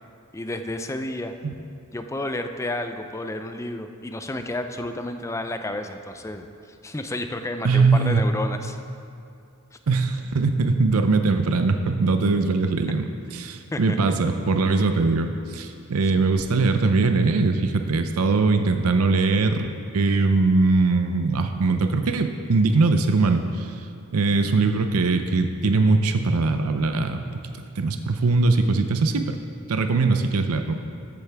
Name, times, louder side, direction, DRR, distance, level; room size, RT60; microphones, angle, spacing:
voice 1, 0.3-1.3 1.9-6.5 6.8-8.8 13.7-14.0, left 1 dB, 15° left, 7 dB, 0.4 m, -31 dB
voice 2, 7.6-8.2 9.9-23.8 24.1-27.2 27.8-29.4 29.7-30.7, right 3 dB, 80° right, 7 dB, 0.6 m, -21 dB
14.0 x 8.2 x 3.4 m, 2.5 s
head